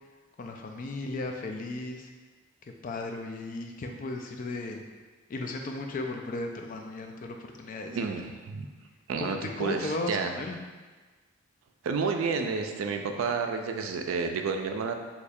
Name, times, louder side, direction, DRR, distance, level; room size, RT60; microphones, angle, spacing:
voice 1, 0.4-2.1 2.8-4.8 5.3-8.0 9.2-10.6, left 2 dB, 40° left, 3 dB, 0.3 m, -35 dB
voice 2, 7.9-8.7 9.1-10.3 11.8-14.9, right 5 dB, 85° right, 5 dB, 0.4 m, -30 dB
2.9 x 2.3 x 4.2 m, 1.3 s
head